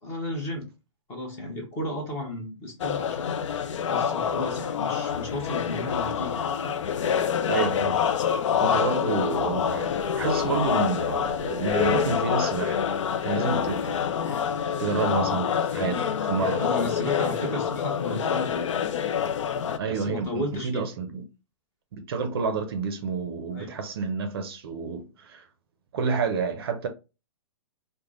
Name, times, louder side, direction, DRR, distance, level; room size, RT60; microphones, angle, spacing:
voice 1, 0.0-0.7 1.1-3.4 3.9-6.8 8.6-8.9 16.6-18.7 19.9-20.9 23.5-23.7, left 1 dB, 15° left, 0.9 m, -34 dB
sound 1, 2.8-19.8, left 8 dB, 70° left, 0.4 m, -26 dB
voice 2, 7.5-8.2 8.6-12.9 13.2-14.4 14.8-16.7 19.8-21.2 21.9-25.5 25.9-26.9, right 5 dB, 50° right, 0.5 m, -29 dB
3.2 x 2.1 x 3.7 m
hypercardioid pair, 165°, 16 cm